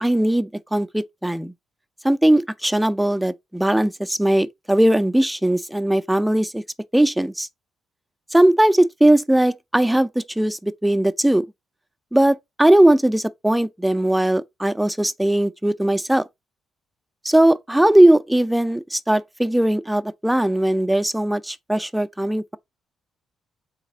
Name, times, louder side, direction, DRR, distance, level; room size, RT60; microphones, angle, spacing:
voice 1, 0.0-1.5 2.0-6.6 6.9-7.5 8.3-11.4 12.1-16.2 17.2-22.6, right 1 dB, 5° right, 0.4 m, -19 dB
4.1 x 3.3 x 3.8 m
cardioid pair, 90°, 0 cm